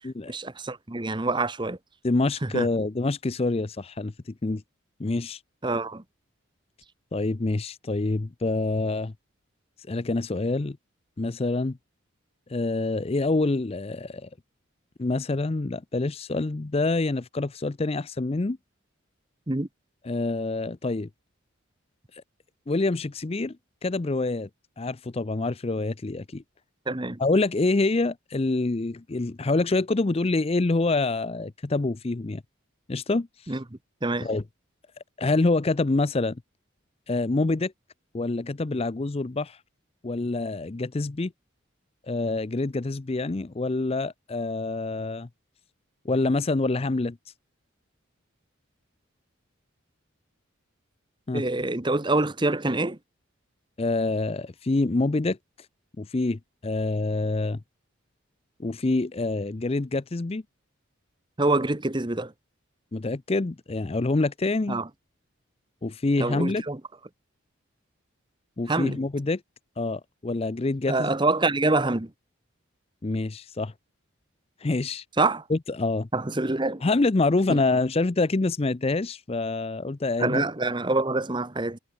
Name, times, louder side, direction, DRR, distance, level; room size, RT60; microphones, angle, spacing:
voice 1, 0.3-1.8 2.4-2.7 5.6-6.0 19.5-19.7 26.9-27.2 33.5-33.6 34.0-34.3 51.3-53.0 61.4-62.3 64.7-64.9 66.2-66.8 68.7-69.0 70.9-72.1 75.2-75.4 76.1-76.8 77.5-77.6 80.2-81.8, right 2 dB, 20° right, 1.0 m, -26 dB
voice 2, 2.0-4.1 4.4-4.6 5.0-5.4 7.1-9.1 9.9-10.8 11.2-11.8 12.5-14.3 15.0-18.6 20.0-21.1 22.1-22.2 22.7-23.6 23.8-24.5 24.8-26.4 27.2-32.4 32.9-33.5 34.2-34.4 35.2-36.4 37.1-37.7 38.1-39.6 40.0-41.3 42.1-45.3 46.0-47.2 51.3-51.4 53.8-55.4 56.0-57.6 58.6-60.4 62.9-64.8 65.8-66.6 68.6-69.4 69.8-71.1 73.0-73.7 74.6-75.0 75.5-76.1 76.8-80.4, left 2 dB, 30° left, 0.5 m, -26 dB
head